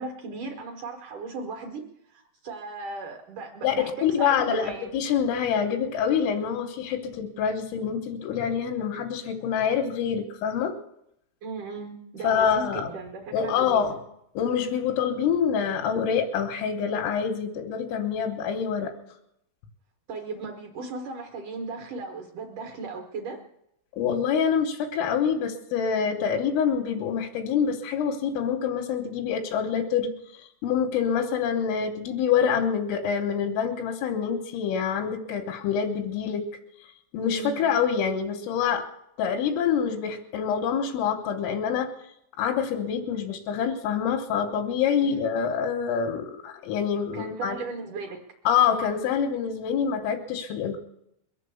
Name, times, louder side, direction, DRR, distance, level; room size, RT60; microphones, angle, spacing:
voice 1, 0.0-4.9 11.4-14.0 20.1-23.4 37.2-37.6 45.0-45.3 47.1-48.2, right 3 dB, 65° right, 1 dB, 2.0 m, -36 dB
voice 2, 4.0-10.7 12.2-12.9 13.3-14.0 14.4-18.9 23.9-36.5 37.1-38.8 39.2-41.9 42.4-47.6 48.5-50.8, left 7 dB, 90° left, 2 dB, 3.8 m, -26 dB
22.5 x 7.5 x 7.0 m, 0.77 s
omnidirectional pair, 5.6 m